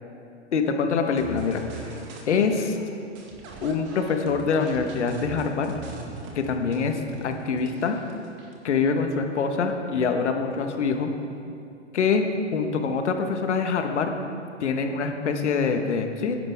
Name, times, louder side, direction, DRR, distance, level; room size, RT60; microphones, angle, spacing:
voice 1, 0.5-1.6 2.3-2.8 3.6-5.7 6.3-7.9 8.6-11.1 11.9-12.2 12.5-14.1 14.6-16.4, left 5 dB, 70° left, 5 dB, 1.6 m, -25 dB
sound 1, 0.9-2.5 2.7-8.7, right 5 dB, 30° right, 2.1 m, -42 dB
20.5 x 11.0 x 3.7 m, 2.7 s
hypercardioid pair, 125°, 36 cm